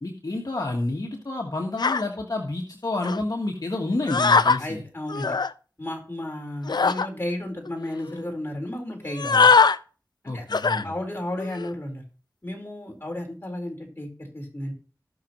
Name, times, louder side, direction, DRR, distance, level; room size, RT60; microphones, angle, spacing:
voice 1, 0.0-4.8 10.3-11.0, left 2 dB, 60° left, 1 dB, 1.5 m, -29 dB
sound 1, 1.8-2.0 3.0-3.2 4.1-4.6 5.1-5.5 6.7-7.1 7.7-7.8 8.0-8.2 9.1-9.8 10.5-10.8 11.4-11.7, left 5 dB, 75° left, 0.4 m, -21 dB
voice 2, 4.6-5.3 5.8-9.5 10.2-10.4 10.8-12.0 12.4-14.7, left 1 dB, 30° left, 1 dB, 4.3 m, -33 dB
18.5 x 6.4 x 3.1 m, 0.37 s
wide cardioid pair, 40°, 7 cm